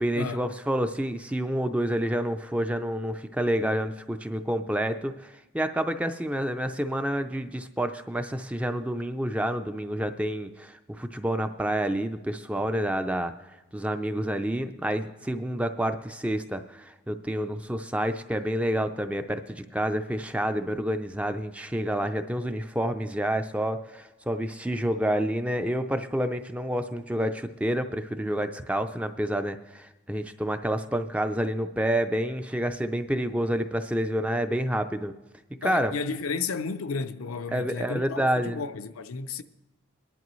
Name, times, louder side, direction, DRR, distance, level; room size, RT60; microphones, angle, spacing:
voice 1, 0.0-13.3 13.7-35.1 35.6-35.9 37.5-38.6, right 1 dB, 5° right, 0.4 m, -28 dB
voice 2, 35.6-39.4, left 4 dB, 85° left, 0.6 m, -33 dB
21.5 x 10.5 x 3.1 m
head